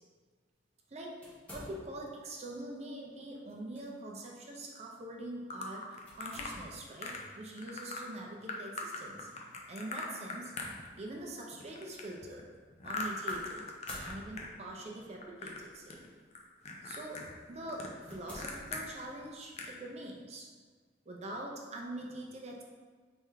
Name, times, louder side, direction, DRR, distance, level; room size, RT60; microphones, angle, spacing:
sound 1, 1.2-2.2 3.5-3.8 4.3-4.4 6.1-6.9 9.0-9.3 10.1-10.2 13.3-14.7 15.6-16.0 16.6-16.8 17.3-17.4 18.0-19.3, equal, 5° left, 0.9 m, -51 dB
voice 1, 1.5-9.3 9.7-10.5 10.9-12.5 12.8-13.7 14.0-16.0 16.8-20.5 21.1-22.6, right 1 dB, 35° right, -1 dB, 0.5 m, -44 dB
sound 2, 5.5-6.5 7.0-7.3 7.6-8.0 8.5-11.2 11.5-14.5 14.7-15.6 15.9-16.4 16.7-18.8 19.2-19.3 19.5-19.8, left 3 dB, 35° left, 0.4 m, -40 dB
3.5 x 3.4 x 3.3 m, 1.5 s
head